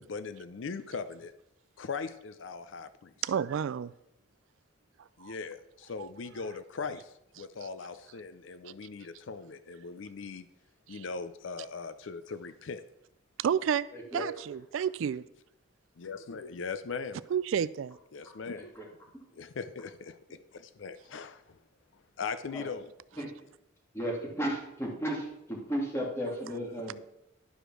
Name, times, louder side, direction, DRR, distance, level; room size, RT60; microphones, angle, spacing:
voice 1, 0.0-1.3 1.8-3.1 5.2-10.5 10.9-12.8 16.0-17.2 18.1-18.7 19.3-21.6 22.2-22.9, left 5 dB, 70° left, 0.5 m, -40 dB
voice 2, 3.2-3.9 5.2-5.3 6.0-6.1 10.9-11.0 13.4-13.9 14.1-15.2 17.3-18.0 26.9-27.0, right 8 dB, 80° right, 0.3 m, -30 dB
voice 3, 13.9-14.2 18.6-18.8 22.5-22.7 23.2-23.3 23.9-26.9, equal, 15° left, 2.3 m, -34 dB
11.5 x 5.0 x 6.1 m
head